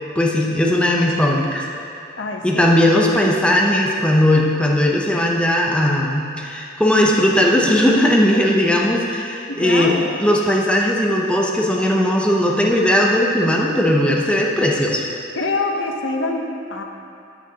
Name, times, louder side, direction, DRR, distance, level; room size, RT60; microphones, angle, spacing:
voice 1, 0.2-1.7 2.4-15.1, left 1 dB, 5° left, -2 dB, 0.6 m, -18 dB
voice 2, 2.2-2.9 9.5-10.3 15.4-16.8, left 2 dB, 75° left, 2 dB, 0.8 m, -25 dB
15.5 x 6.1 x 2.8 m, 2.5 s
head